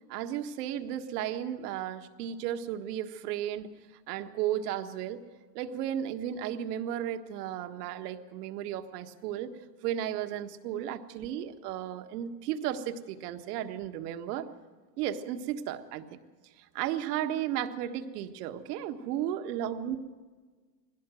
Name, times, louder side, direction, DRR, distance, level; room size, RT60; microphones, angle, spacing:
voice 1, 0.1-3.7 4.1-5.2 5.5-9.5 9.8-14.5 15.0-16.2 16.6-20.0, right 10 dB, 65° right, 7 dB, 1.7 m, -34 dB
20.0 x 17.0 x 7.7 m, 1.4 s
supercardioid pair, 130°, 49 cm